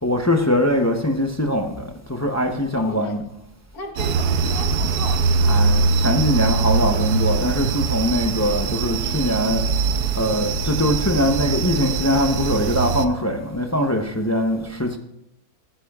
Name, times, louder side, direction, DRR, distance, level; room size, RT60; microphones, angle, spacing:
voice 1, 0.0-3.2 5.5-9.7 10.1-15.0, left 1 dB, 20° left, 0.4 m, -22 dB
voice 2, 2.8-3.2 3.7-5.8 14.5-14.7, left 2 dB, 75° left, 1.8 m, -36 dB
sound 1, 4.0-13.1, right 4 dB, 80° right, 1.1 m, -22 dB
15.5 x 10.0 x 2.3 m
omnidirectional pair, 1.6 m